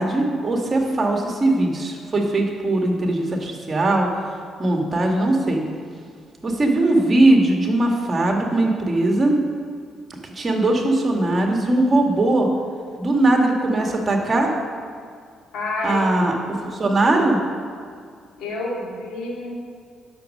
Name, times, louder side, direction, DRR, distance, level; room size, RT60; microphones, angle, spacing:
voice 1, 0.0-4.1 4.6-5.6 6.4-9.4 10.2-12.5 13.0-14.5 15.8-17.4, right 2 dB, 30° right, 1 dB, 1.8 m, -20 dB
voice 2, 15.5-16.3 18.4-19.6, left 2 dB, 85° left, -3 dB, 2.5 m, -28 dB
10.0 x 6.4 x 6.4 m, 2.1 s
cardioid pair, 90°, 0 cm